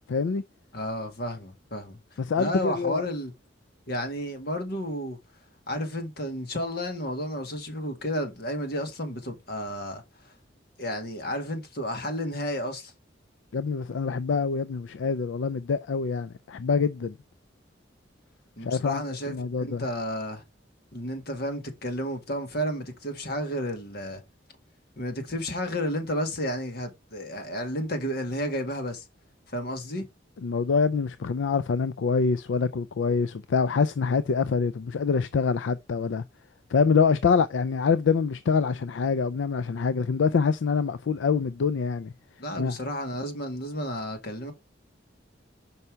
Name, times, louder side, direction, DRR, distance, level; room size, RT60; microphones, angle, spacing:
voice 1, 0.1-0.4 2.2-3.0 13.5-17.2 18.6-19.8 30.4-36.2 36.7-42.1 42.6-42.8, left 5 dB, 80° left, 0.4 m, -25 dB
voice 2, 0.7-2.0 2.4-3.3 3.9-5.2 5.7-10.0 10.8-12.9 18.6-20.4 20.9-24.2 25.0-29.0 29.5-30.1 42.4-44.5, equal, 60° left, 1.9 m, -32 dB
5.6 x 5.5 x 4.6 m
head